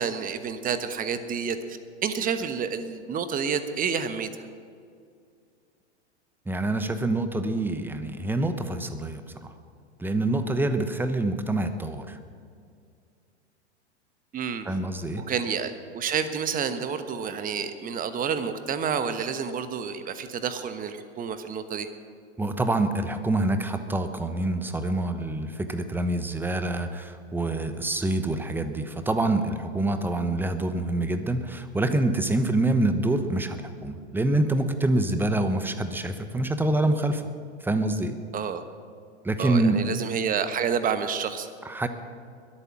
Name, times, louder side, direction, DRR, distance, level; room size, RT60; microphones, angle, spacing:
voice 1, 0.0-4.3 14.3-14.7 15.2-21.9 38.3-38.6 39.4-41.5, right 7 dB, 25° right, 10 dB, 1.2 m, -29 dB
voice 2, 6.5-9.5 10.0-12.2 14.7-15.2 22.4-37.2 37.6-38.2 39.2-39.8 41.6-41.9, right 2 dB, 5° right, 8 dB, 1.0 m, -26 dB
22.0 x 8.8 x 6.0 m, 2.3 s
hypercardioid pair, 100°, 35 cm